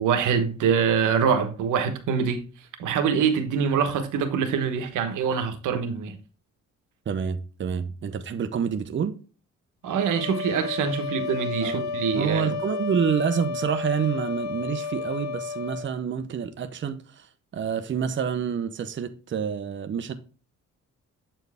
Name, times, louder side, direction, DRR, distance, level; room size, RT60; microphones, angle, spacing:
voice 1, 0.0-2.4 2.8-6.2 9.8-12.5, right 6 dB, 85° right, 1.1 m, -24 dB
voice 2, 7.1-9.2 11.6-11.8 12.1-17.3 17.5-20.1, right 7 dB, 40° right, 0.8 m, -28 dB
sound 1, 9.9-15.9, left 5 dB, 65° left, 0.9 m, -32 dB
8.0 x 4.5 x 3.4 m
cardioid pair, 90°, 30 cm